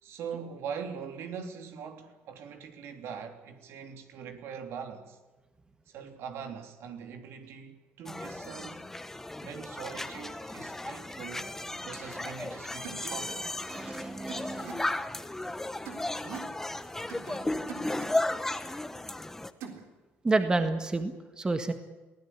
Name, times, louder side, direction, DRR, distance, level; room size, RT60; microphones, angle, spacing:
voice 1, 0.0-5.2 5.9-8.9 9.4-11.5 11.8-13.5 13.8-14.0, right 6 dB, 70° right, 3.2 m, -42 dB
sound 1, 8.1-19.5, left 2 dB, 10° left, 1.2 m, -35 dB
sound 2, 12.4-12.5 12.8-13.1 14.3-14.7 15.8-16.5 17.1-17.4 17.7-18.1 19.6-19.8, right 7 dB, 85° right, 3.8 m, -42 dB
voice 2, 13.7-14.7 20.2-21.7, right 3 dB, 15° right, 1.7 m, -29 dB
22.5 x 16.5 x 9.9 m
cardioid pair, 125°, 5 cm